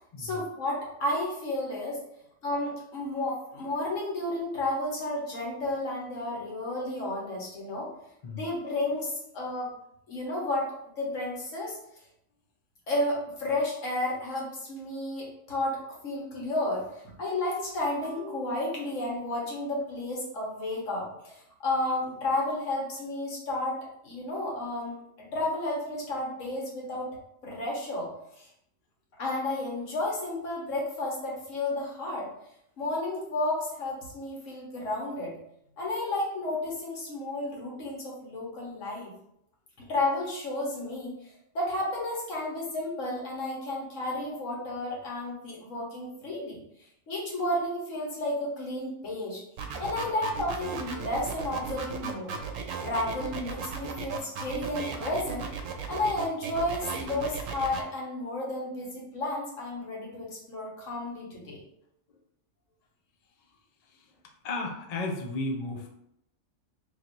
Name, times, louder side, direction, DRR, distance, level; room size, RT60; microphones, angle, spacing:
voice 1, 0.2-2.0 2.4-7.9 8.3-9.7 10.1-11.8 12.9-23.8 24.0-27.1 27.4-28.5 29.2-32.3 32.8-35.3 35.8-39.1 39.8-41.1 41.5-46.6 47.1-49.4 49.8-52.4 52.8-55.5 55.9-61.6, left 1 dB, 80° left, -3 dB, 1.6 m, -32 dB
sound 1, 49.6-57.8, right 6 dB, 85° right, 1.0 m, -36 dB
voice 2, 64.4-65.9, left 2 dB, 45° left, 1 dB, 0.5 m, -33 dB
3.2 x 2.6 x 4.5 m, 0.76 s
omnidirectional pair, 1.3 m